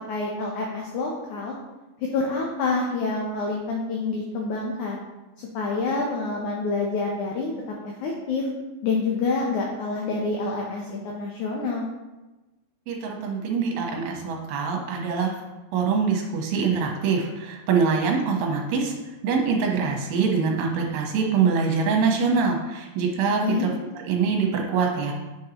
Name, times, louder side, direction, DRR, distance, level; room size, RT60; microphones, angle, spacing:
voice 1, 0.1-1.5 2.1-5.0 5.5-7.5 7.8-8.5 8.8-11.9 23.4-23.7, left 3 dB, 90° left, -1 dB, 1.7 m, -27 dB
voice 2, 12.9-15.3 15.7-18.9 19.2-23.7 24.1-25.1, right 5 dB, 75° right, 0 dB, 2.9 m, -24 dB
8.0 x 5.5 x 2.9 m, 1.1 s
omnidirectional pair, 4.5 m